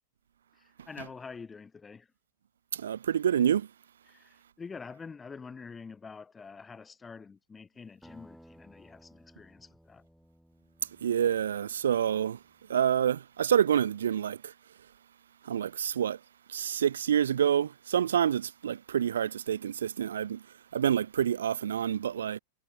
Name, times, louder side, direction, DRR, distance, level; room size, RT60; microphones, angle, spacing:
voice 1, 0.5-2.1 4.1-10.0, left 5 dB, 15° left, 2.3 m, -46 dB
voice 2, 2.7-3.7 11.0-12.4 12.7-14.5 15.5-16.2 16.5-20.4 20.7-22.4, right 9 dB, 65° right, 0.4 m, -27 dB
Acoustic guitar, 8.0-12.9, equal, ahead, 4.0 m, -58 dB
figure-of-eight pair, 90°, 0 cm